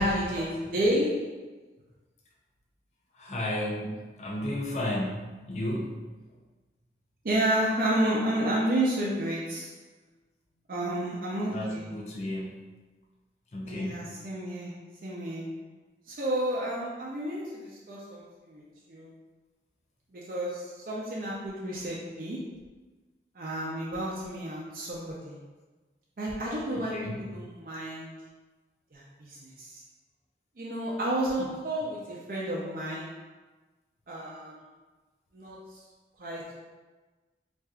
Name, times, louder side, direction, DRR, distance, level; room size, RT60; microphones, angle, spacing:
voice 1, 0.0-1.4 7.2-9.7 10.7-11.9 13.6-15.6 16.1-18.6 18.9-19.1 20.1-22.5 23.3-25.4 26.2-28.2 28.9-29.8 30.6-33.2 34.1-34.6 35.3-35.8 36.2-36.5, right 1 dB, 50° right, -5 dB, 0.5 m, -31 dB
voice 2, 3.2-5.9 11.5-12.6 13.5-14.1 26.7-27.1, left 1 dB, 40° left, -3 dB, 0.5 m, -33 dB
4.3 x 2.5 x 2.3 m, 1.3 s
head